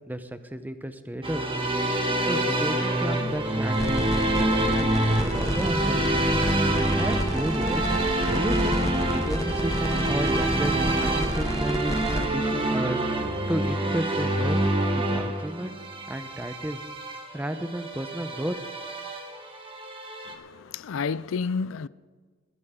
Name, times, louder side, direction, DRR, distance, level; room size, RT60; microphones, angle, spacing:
voice 1, 0.1-1.5 2.2-6.3 7.0-7.9 8.2-13.0 13.5-14.6 14.9-15.7 16.1-16.8 17.3-18.5, equal, 10° right, 0.8 m, -32 dB
sound 1, 1.2-20.3, right 1 dB, 30° right, 1.6 m, -26 dB
sound 2, 3.7-12.3, left 1 dB, 15° left, 0.9 m, -31 dB
voice 2, 20.3-21.9, left 5 dB, 85° left, 0.4 m, -30 dB
21.0 x 12.5 x 3.8 m
head